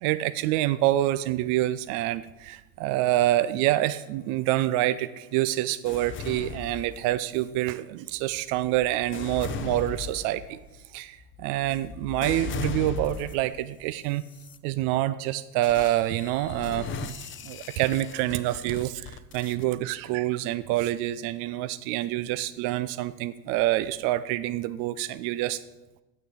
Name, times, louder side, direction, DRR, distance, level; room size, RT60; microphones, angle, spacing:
voice 1, 0.0-10.6 10.9-14.2 14.6-25.6, right 15 dB, 40° right, 14 dB, 0.4 m, -27 dB
sound 1, 5.9-7.4 8.1-13.6 14.2-14.6 15.6-19.6, left 6 dB, 25° left, 0.7 m, -38 dB
8.1 x 6.6 x 8.4 m, 1.0 s
figure-of-eight pair, 75°, 49 cm